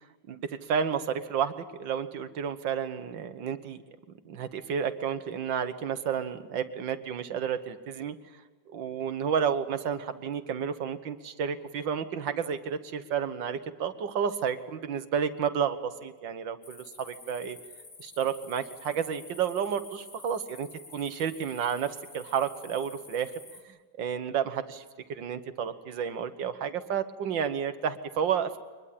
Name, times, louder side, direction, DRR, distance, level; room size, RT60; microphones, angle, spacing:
voice 1, 0.3-3.8 4.3-8.2 8.7-17.6 18.0-23.3 23.7-24.8 25.1-28.6, right 7 dB, 70° right, 10 dB, 1.9 m, -31 dB
sound 1, 16.6-23.6, left 3 dB, 60° left, 3.7 m, -50 dB
24.0 x 21.5 x 8.5 m, 1.4 s
omnidirectional pair, 2.1 m